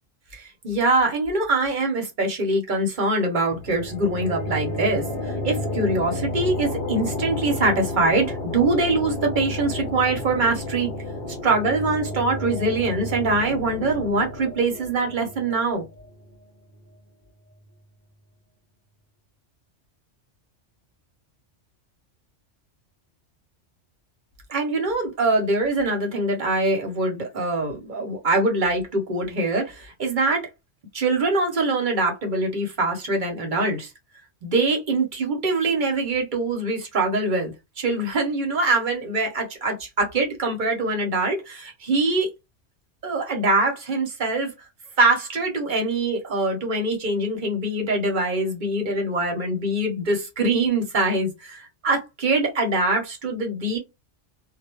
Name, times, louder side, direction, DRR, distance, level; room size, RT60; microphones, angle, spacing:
voice 1, 0.3-10.9 11.4-15.8 24.5-30.5 30.9-33.9 34.4-42.3 43.0-44.5 45.0-53.8, right 2 dB, 50° right, 0.8 m, -23 dB
sound 1, 3.5-16.9, left 2 dB, 60° left, 0.9 m, -31 dB
2.2 x 2.1 x 2.9 m
omnidirectional pair, 1.2 m